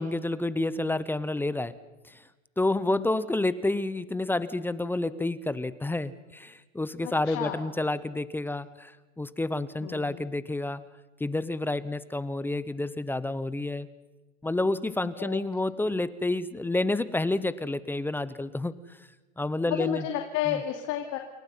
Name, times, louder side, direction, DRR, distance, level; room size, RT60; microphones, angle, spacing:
voice 1, 0.0-1.7 2.1-2.2 2.6-8.9 9.2-10.8 11.2-13.9 14.4-19.0 19.4-20.0 20.5-20.6, left 2 dB, 5° left, 17 dB, 0.7 m, -29 dB
voice 2, 7.0-7.7 9.8-10.2 15.0-15.4 19.7-21.2, left 11 dB, 45° left, 4 dB, 2.7 m, -32 dB
29.0 x 22.5 x 5.6 m, 1.2 s
supercardioid pair, 125°, 38 cm